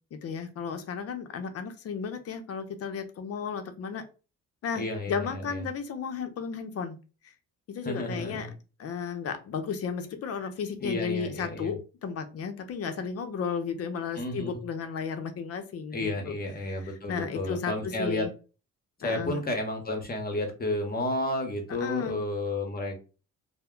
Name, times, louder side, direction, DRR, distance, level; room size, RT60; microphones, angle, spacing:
voice 1, 0.1-4.0 4.6-7.0 7.7-8.5 8.8-16.3 16.8-17.7 18.0-18.3 19.0-19.4 21.8-22.2, left 6 dB, 50° left, 8 dB, 0.6 m, -34 dB
voice 2, 4.7-5.6 7.8-8.5 10.8-11.7 14.1-14.6 15.9-18.2 19.0-23.0, left 1 dB, 30° left, 3 dB, 0.9 m, -32 dB
2.1 x 2.1 x 3.6 m, 0.33 s
cardioid pair, 90°, 30 cm